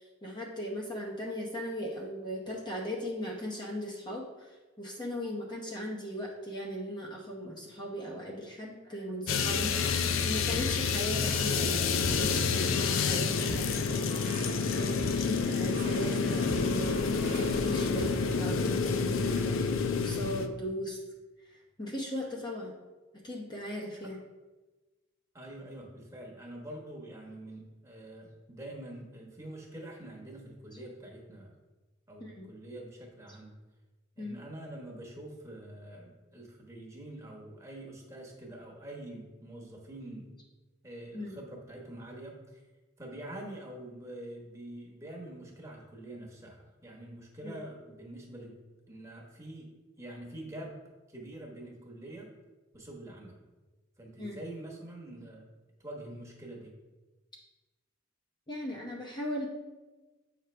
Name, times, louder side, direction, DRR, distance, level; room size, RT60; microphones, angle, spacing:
voice 1, 0.0-14.0 14.7-21.0 21.4-22.8 23.2-24.2 32.2-32.4 34.2-34.4 41.1-41.4 47.4-47.6 54.2-54.4 58.5-59.5, equal, 20° left, -3 dB, 0.8 m, -38 dB
sound 1, 9.3-20.5, left 5 dB, 75° left, 0.4 m, -29 dB
sound 2, 9.5-18.1, right 2 dB, 50° right, 1.2 m, -43 dB
voice 2, 25.3-31.5 32.1-33.6 34.2-40.3 40.8-42.6 43.0-48.6 48.9-50.8 51.1-52.3 52.7-53.4 54.0-55.5 55.8-56.7, right 1 dB, 15° right, -1 dB, 1.2 m, -45 dB
7.9 x 5.1 x 3.3 m, 1.2 s
head